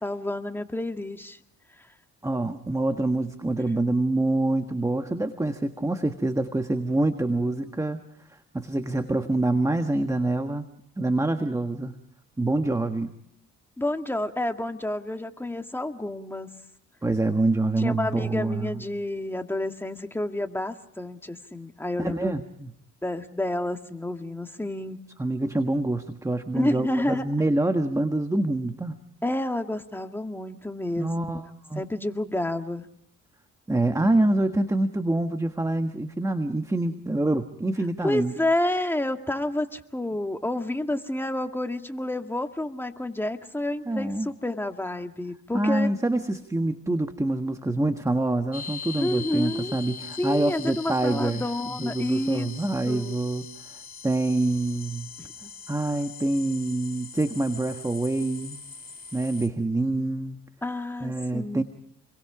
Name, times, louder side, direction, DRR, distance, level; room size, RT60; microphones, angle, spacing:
voice 1, 0.0-1.4 1.8-1.9 7.6-7.7 13.8-16.5 17.8-22.4 23.0-25.0 26.5-27.3 29.2-31.4 31.8-32.9 38.0-46.0 49.0-49.7 50.2-52.5 52.9-53.2 55.2-55.5 60.6-61.6, left 1 dB, 5° left, 5 dB, 1.9 m, -29 dB
voice 2, 2.2-8.0 8.5-10.7 11.0-11.9 12.4-13.1 17.0-18.7 22.0-22.7 25.2-29.0 31.0-31.4 31.7-31.8 33.7-38.3 43.9-44.3 45.5-53.5 54.0-55.1 55.7-58.6 59.1-60.4 61.0-61.6, right 2 dB, 10° right, 7 dB, 1.5 m, -26 dB
sound 1, 48.5-59.5, left 6 dB, 30° left, 2.4 m, -41 dB
30.0 x 23.0 x 4.9 m, 0.71 s
cardioid pair, 90°, 30 cm